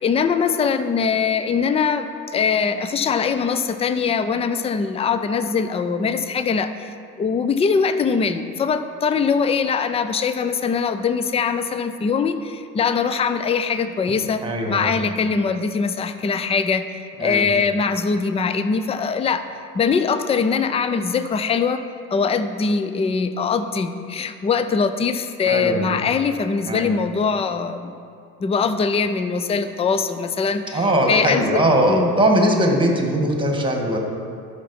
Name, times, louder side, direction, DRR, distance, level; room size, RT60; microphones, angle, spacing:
voice 1, 0.0-6.9 7.2-14.4 14.7-19.4 19.7-21.8 22.1-27.9 28.4-32.1, left 5 dB, 15° left, 11 dB, 0.4 m, -22 dB
voice 2, 14.4-14.9 17.2-17.5 25.4-26.0 26.7-26.9 30.7-34.0, right 1 dB, 10° right, 2 dB, 1.7 m, -20 dB
12.0 x 5.9 x 4.3 m, 2.4 s
hypercardioid pair, 70°, 46 cm